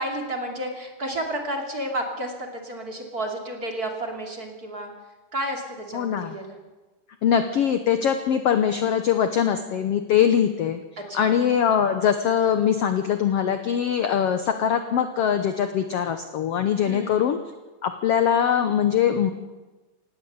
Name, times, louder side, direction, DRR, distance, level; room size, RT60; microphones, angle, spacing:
voice 1, 0.0-4.9 5.3-6.6 11.1-11.3 11.7-11.8 16.8-17.4, right 1 dB, 30° right, 2 dB, 2.8 m, -31 dB
voice 2, 5.9-6.4 7.2-10.8 11.1-17.4 17.8-19.3, left 8 dB, 65° left, 8 dB, 1.6 m, -22 dB
18.0 x 18.0 x 8.1 m, 1.2 s
omnidirectional pair, 3.9 m